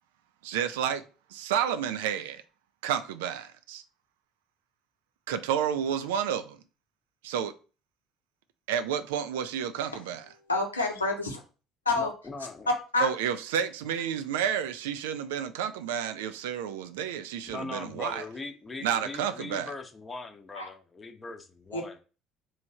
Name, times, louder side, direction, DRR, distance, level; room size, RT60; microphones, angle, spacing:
voice 1, 0.4-1.0 1.3-2.4 2.8-3.8 5.3-6.6 7.2-7.5 8.7-10.2 13.0-18.2 18.8-19.7, right 8 dB, 70° right, 0.3 m, -30 dB
voice 2, 10.5-11.4 11.8-12.1 12.7-13.1 20.5-20.6 21.7-22.0, left 2 dB, 85° left, 0.8 m, -28 dB
voice 3, 11.9-12.7 17.5-22.0, left 3 dB, 25° left, 0.7 m, -40 dB
3.2 x 2.3 x 4.1 m
figure-of-eight pair, 55°, 0 cm